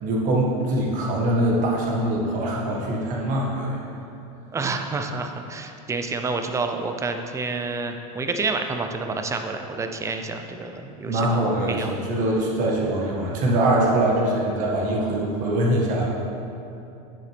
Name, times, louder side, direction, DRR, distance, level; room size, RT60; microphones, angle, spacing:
voice 1, 0.0-3.8 11.0-16.1, right 1 dB, 45° right, -3 dB, 1.8 m, -23 dB
voice 2, 4.5-11.9, right 3 dB, 15° right, 6 dB, 0.6 m, -29 dB
9.1 x 7.2 x 3.4 m, 2.9 s
supercardioid pair, 120°, 19 cm